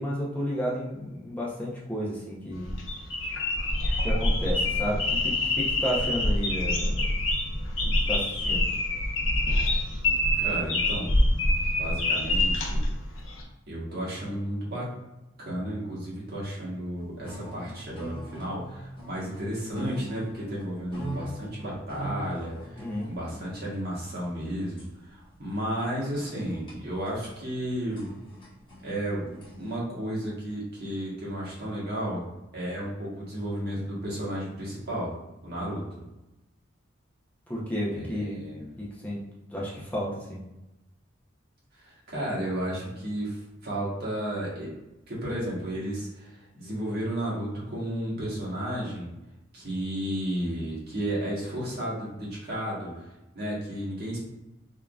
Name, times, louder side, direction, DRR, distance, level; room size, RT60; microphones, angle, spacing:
voice 1, 0.0-2.7 4.0-7.1 7.5-8.7 22.7-23.1 37.5-38.4 38.8-39.2 39.5-40.4, equal, 10° left, -6 dB, 0.7 m, -32 dB
sound 1, 2.5-13.4, left 1 dB, 90° left, 0.7 m, -26 dB
voice 2, 10.4-11.5 11.8-12.8 13.7-14.9 15.4-24.9 25.1-28.1 28.8-32.3 32.5-35.1 35.4-35.8 37.9-38.7 41.8-44.7 45.1-49.1 49.5-53.1 53.3-54.2, right 1 dB, 55° right, -5 dB, 1.3 m, -33 dB
sound 2, 17.0-29.8, right 1 dB, 25° left, 1.3 m, -43 dB
3.7 x 3.5 x 2.3 m, 0.97 s
head